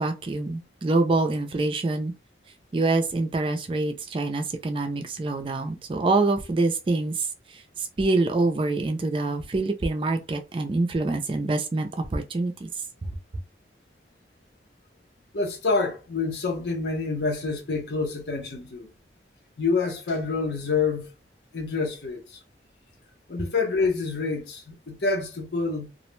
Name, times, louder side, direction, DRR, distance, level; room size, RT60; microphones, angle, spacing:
voice 1, 0.0-2.1 2.7-12.7, right 2 dB, 30° right, 0.3 m, -26 dB
voice 2, 15.3-18.9 19.6-21.1 21.5-22.4 23.3-25.9, left 4 dB, 70° left, 0.7 m, -27 dB
2.4 x 2.0 x 3.0 m
head